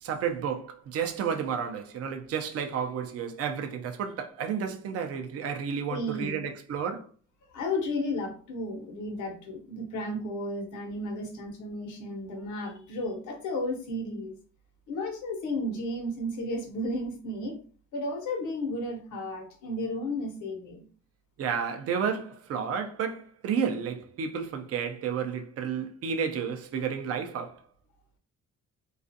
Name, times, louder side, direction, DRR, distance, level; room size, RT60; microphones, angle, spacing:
voice 1, 0.0-7.1 21.4-27.6, right 7 dB, 50° right, 0.5 m, -31 dB
voice 2, 5.9-6.5 7.5-14.4 14.9-17.6 17.9-20.8, left 1 dB, 80° left, 0.8 m, -33 dB
2.4 x 2.4 x 2.6 m
cardioid pair, 90°, 30 cm